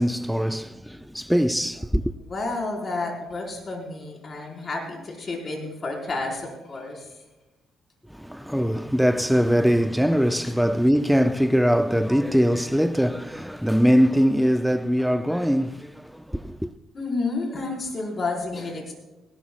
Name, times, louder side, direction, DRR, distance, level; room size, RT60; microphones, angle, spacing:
voice 1, 0.0-2.0 8.1-16.7, equal, ahead, 0.4 m, -22 dB
voice 2, 2.3-7.1 10.4-10.5 16.9-18.9, left 3 dB, 40° left, 4.8 m, -30 dB
19.0 x 18.0 x 2.4 m
cardioid pair, 90°, 0 cm